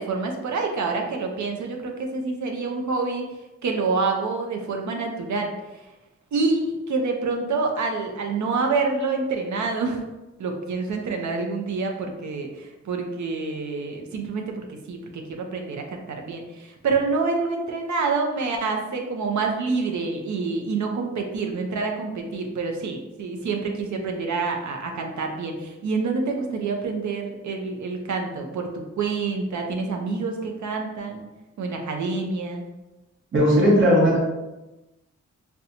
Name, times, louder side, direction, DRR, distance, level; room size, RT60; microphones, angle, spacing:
voice 1, 0.0-3.2 3.6-5.5 6.3-10.0 10.4-31.2 31.6-32.7, right 4 dB, 80° right, 2 dB, 0.6 m, -27 dB
voice 2, 33.3-34.2, equal, 45° right, -5 dB, 1.1 m, -17 dB
4.2 x 2.2 x 2.6 m, 1.0 s
wide cardioid pair, 175°, 29 cm